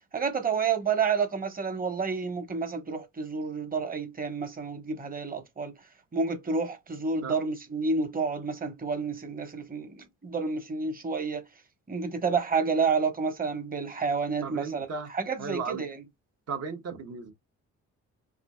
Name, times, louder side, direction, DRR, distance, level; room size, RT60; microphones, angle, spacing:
voice 1, 0.1-5.7 6.1-11.4 11.9-14.9 15.1-15.9, right 5 dB, 30° right, 1.2 m, -29 dB
voice 2, 14.4-15.1 15.4-15.8 16.5-17.3, right 5 dB, 55° right, 1.2 m, -35 dB
4.9 x 2.6 x 2.3 m
cardioid pair, 90°, 30 cm